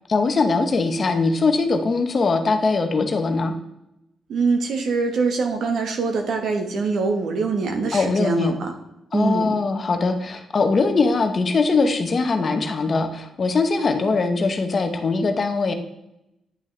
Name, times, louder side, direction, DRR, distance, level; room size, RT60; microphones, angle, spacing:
voice 1, 0.1-3.5 7.9-8.6 9.1-15.7, left 3 dB, 35° left, 6 dB, 0.8 m, -21 dB
voice 2, 4.3-8.7 9.1-9.5, right 4 dB, 60° right, 5 dB, 1.3 m, -23 dB
10.0 x 6.1 x 3.3 m, 0.87 s
cardioid pair, 155°, 0 cm